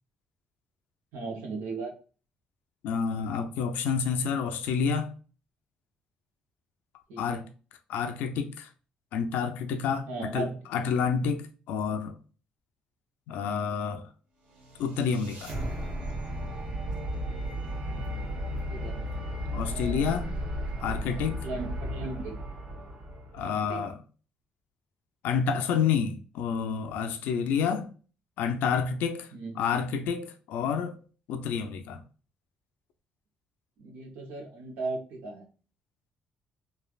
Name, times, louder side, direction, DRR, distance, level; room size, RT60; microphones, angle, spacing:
voice 1, 1.1-1.9 7.1-7.4 10.1-10.6 18.7-19.0 19.6-20.0 21.1-22.4 23.4-23.8 29.3-29.6 33.8-35.5, right 3 dB, 85° right, 0.8 m, -37 dB
voice 2, 2.8-5.1 7.2-7.5 7.9-8.7 9.1-12.2 13.3-14.1 14.8-15.5 19.5-20.3 20.8-21.4 23.3-24.0 25.2-27.9 28.4-29.3 29.6-31.0 31.3-32.0, left 6 dB, 90° left, 0.4 m, -29 dB
sound 1, 14.5-23.6, equal, 45° right, 1.0 m, -34 dB
3.2 x 2.4 x 2.3 m
cardioid pair, 100°, 3 cm